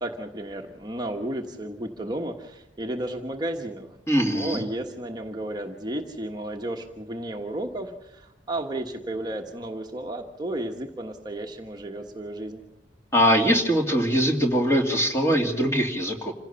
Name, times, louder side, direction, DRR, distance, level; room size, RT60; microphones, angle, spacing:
voice 1, 0.0-4.0 4.2-12.6, right 1 dB, 25° right, 2 dB, 1.3 m, -33 dB
voice 2, 4.1-4.6 13.1-16.3, equal, 15° left, 3 dB, 2.6 m, -22 dB
27.0 x 16.5 x 6.9 m, 0.95 s
head